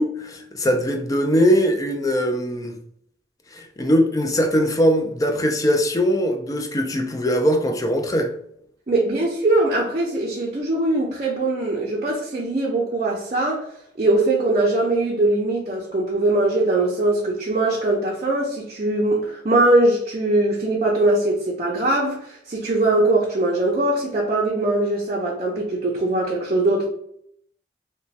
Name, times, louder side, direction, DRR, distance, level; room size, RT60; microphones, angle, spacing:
voice 1, 0.0-2.8 3.5-8.3, equal, 20° left, 0.4 m, -21 dB
voice 2, 8.9-13.7 14.0-26.8, right 2 dB, 40° right, 0.5 m, -21 dB
3.0 x 2.2 x 2.7 m
head